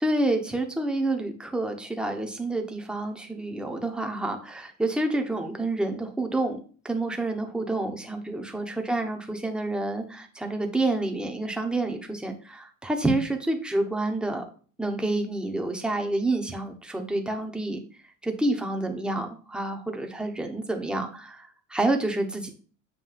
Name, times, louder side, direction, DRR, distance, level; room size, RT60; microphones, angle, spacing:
voice 1, 0.0-6.6 6.8-14.4 14.8-17.8 18.2-22.5, right 2 dB, ahead, 3 dB, 1.0 m, -28 dB
7.6 x 2.6 x 5.6 m, 0.41 s
supercardioid pair, 110°, 37 cm